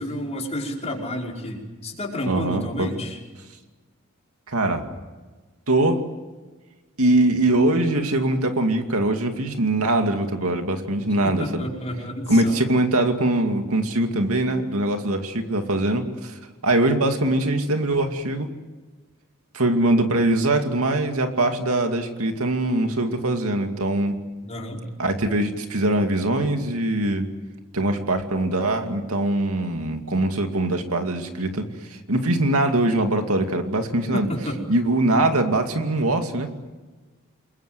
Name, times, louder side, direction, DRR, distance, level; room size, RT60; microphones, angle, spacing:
voice 1, 0.0-3.2 11.2-12.6 24.4-24.8 34.1-34.6, equal, 30° left, -1 dB, 5.3 m, -30 dB
voice 2, 2.3-2.9 4.5-4.8 5.7-6.0 7.0-11.6 12.3-18.5 19.5-24.1 25.0-27.3 27.7-31.7 32.1-34.3 34.7-36.5, right 1 dB, 75° right, 5 dB, 2.4 m, -22 dB
29.0 x 22.0 x 7.9 m, 1.3 s
head